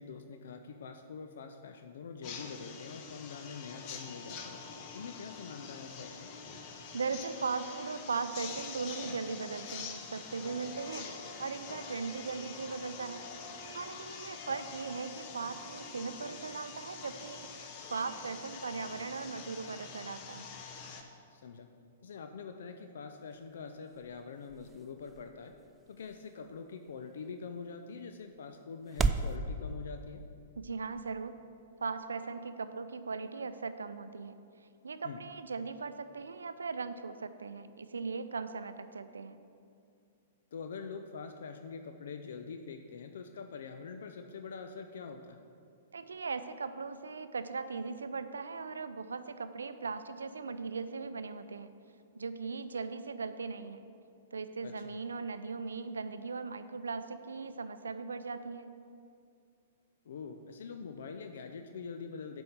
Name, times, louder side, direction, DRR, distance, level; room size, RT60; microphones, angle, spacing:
voice 1, 0.0-4.6 4.9-6.3 14.5-14.6 21.3-21.7 22.0-25.5 25.9-30.2 35.0-35.2 40.5-45.4 54.6-55.0 60.1-62.4, left 5 dB, 65° left, 7 dB, 0.5 m, -44 dB
sound 1, 2.2-21.0, left 5 dB, 40° left, 1.0 m, -45 dB
voice 2, 6.9-13.3 13.7-17.5 17.9-20.5 30.6-31.4 31.8-34.3 34.8-39.4 45.9-51.7 52.2-53.8 54.3-58.8, right 4 dB, 75° right, 11 dB, 0.5 m, -38 dB
sound 2, 23.1-29.4, right 4 dB, 15° right, 0.4 m, -38 dB
7.6 x 5.3 x 7.2 m, 2.4 s
figure-of-eight pair, 110°, 0 cm